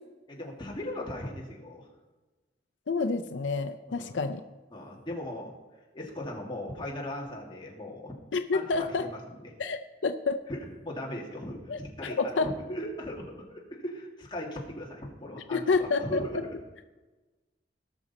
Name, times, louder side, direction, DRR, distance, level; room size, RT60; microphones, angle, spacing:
voice 1, 0.3-1.9 3.9-4.2 4.7-5.5 5.9-8.2 8.5-9.5 10.5-16.5, left 1 dB, 25° left, -2 dB, 2.2 m, -38 dB
voice 2, 2.9-4.4 8.3-9.1 9.6-10.4 11.7-11.8 12.2-12.5 15.5-16.2, left 4 dB, 85° left, 7 dB, 0.6 m, -28 dB
18.5 x 6.2 x 4.2 m, 1.2 s
head